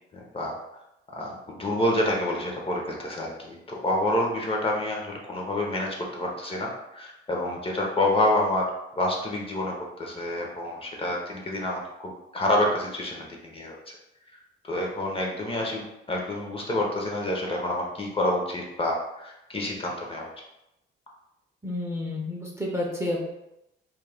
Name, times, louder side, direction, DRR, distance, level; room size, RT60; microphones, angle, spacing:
voice 1, 0.1-0.6 1.1-8.7 9.0-13.8 14.7-20.3, left 1 dB, 30° left, -1 dB, 0.6 m, -28 dB
voice 2, 21.6-23.3, left 1 dB, 15° right, -2 dB, 0.6 m, -30 dB
2.3 x 2.1 x 3.3 m, 0.88 s
cardioid pair, 90°, 20 cm